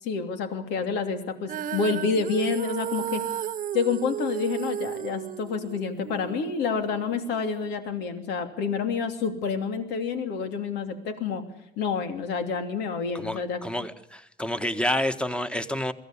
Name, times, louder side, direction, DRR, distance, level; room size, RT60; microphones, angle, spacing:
voice 1, 0.0-3.2 3.7-11.4 11.8-13.6, left 5 dB, 85° left, 7 dB, 2.9 m, -28 dB
Female singing, 1.5-7.7, right 10 dB, 55° right, 1.1 m, -34 dB
voice 2, 13.1-15.9, left 1 dB, 5° left, 10 dB, 1.5 m, -29 dB
22.5 x 16.0 x 9.8 m, 0.81 s
cardioid pair, 110°, 17 cm